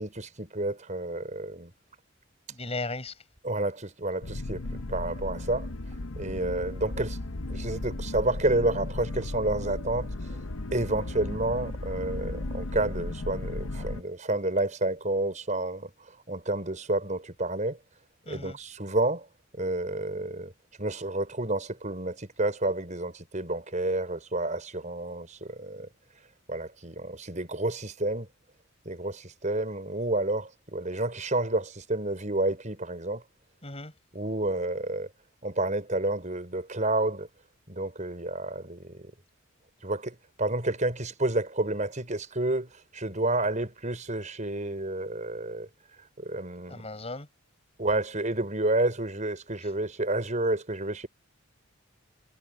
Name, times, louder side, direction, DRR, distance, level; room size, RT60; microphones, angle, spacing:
voice 1, 0.0-1.7 3.4-4.6 4.9-5.7 6.2-7.2 7.5-10.4 10.7-15.9 16.3-17.8 18.3-19.3 19.6-20.5 20.8-25.9 26.5-28.3 28.9-33.2 34.1-35.1 35.4-37.3 37.7-39.1 39.8-45.7 46.2-46.8 47.8-51.1, right 2 dB, 35° right, 5.8 m, -30 dB
voice 2, 2.5-3.1 18.3-18.6 33.6-33.9 46.7-47.3, left 2 dB, 30° left, 5.1 m, -36 dB
sound 1, 4.2-14.0, left 2 dB, 85° left, 1.1 m, -35 dB
head